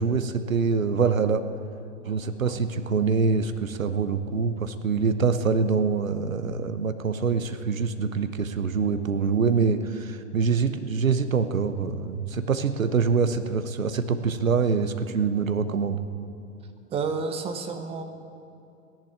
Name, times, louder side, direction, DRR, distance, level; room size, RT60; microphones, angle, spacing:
voice 1, 0.0-1.4 2.1-16.0, right 5 dB, 75° right, 10 dB, 1.0 m, -25 dB
voice 2, 16.9-18.0, right 4 dB, 15° right, 7 dB, 1.0 m, -30 dB
16.0 x 10.5 x 8.6 m, 2.5 s
figure-of-eight pair, 105°, 40 cm